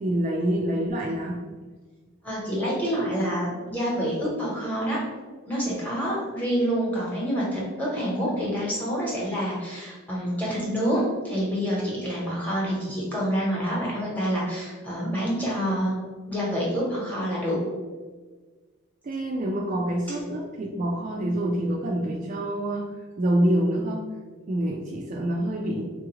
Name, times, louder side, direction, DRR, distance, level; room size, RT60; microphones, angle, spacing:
voice 1, 0.0-1.4 19.0-24.0 24.5-25.8, right 1 dB, 35° right, -2 dB, 0.3 m, -26 dB
voice 2, 2.2-5.0 5.5-15.9 16.3-17.6, equal, 10° left, -6 dB, 1.0 m, -27 dB
3.6 x 2.4 x 3.0 m, 1.4 s
head